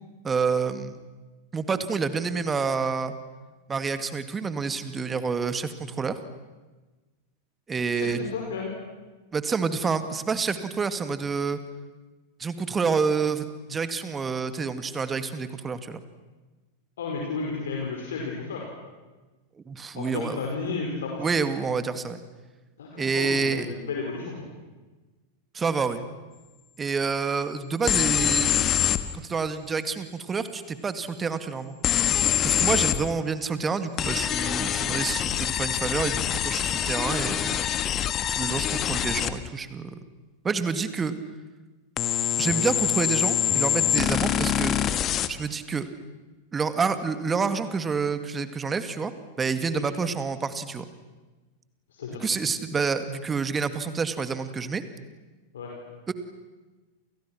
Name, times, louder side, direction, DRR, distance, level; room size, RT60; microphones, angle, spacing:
voice 1, 0.2-1.0 1.5-3.2 3.7-6.2 7.7-8.3 9.3-11.6 12.4-16.0 19.7-20.4 21.2-22.2 23.0-23.7 25.5-26.1 26.8-28.6 29.1-31.8 32.4-37.6 38.3-40.0 40.4-41.2 42.4-44.8 45.3-45.9 46.5-49.1 49.4-50.9 52.2-54.8 56.1-56.2, right 5 dB, 15° right, 11 dB, 2.1 m, -28 dB
voice 2, 7.9-8.8 17.0-18.7 20.0-21.3 22.8-24.5 32.7-32.8 49.7-49.9 51.9-52.2 55.5-55.7, left 4 dB, 65° left, -1 dB, 5.2 m, -33 dB
sound 1, 27.9-29.0 31.8-33.0 34.0-39.3 42.0-45.3, left 10 dB, 30° left, 1.5 m, -25 dB
29.5 x 29.5 x 6.1 m, 1.2 s
figure-of-eight pair, 90°, 0 cm